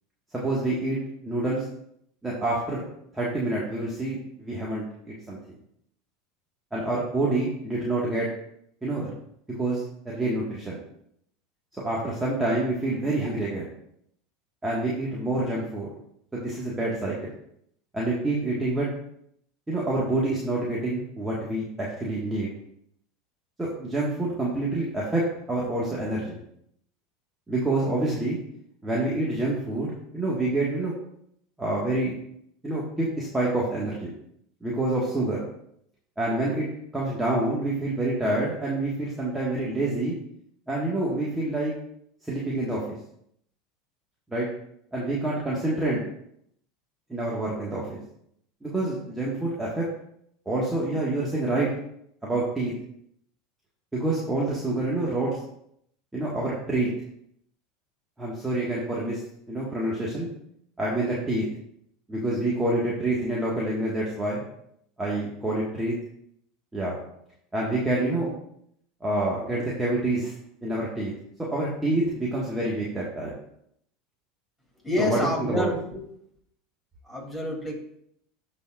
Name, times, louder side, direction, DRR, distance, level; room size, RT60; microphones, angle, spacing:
voice 1, 0.3-1.6 2.2-2.9 3.1-5.5 6.7-8.3 8.8-9.1 9.5-10.8 11.8-13.7 14.6-15.9 16.3-17.1 17.9-18.9 19.7-22.5 23.6-26.4 27.5-28.4 28.8-30.9 31.6-32.2 32.6-34.1 34.6-35.4 36.2-36.7 36.9-40.1 40.7-41.7 42.3-42.8 44.3-44.5 44.9-46.0 47.1-48.0 48.6-49.9 50.4-51.7 52.2-52.7 53.9-55.3 56.1-56.9 58.2-59.2 59.5-60.3 60.8-61.4 62.1-64.4 65.0-65.9 66.7-67.0 67.5-68.3 69.0-70.3 70.6-71.1 71.5-73.3 75.0-75.7, right 2 dB, 15° right, -6 dB, 1.7 m, -27 dB
voice 2, 74.8-76.0 77.0-77.8, left 2 dB, 5° left, -3 dB, 3.0 m, -28 dB
12.5 x 4.3 x 2.5 m, 0.71 s
hypercardioid pair, 90°, 0 cm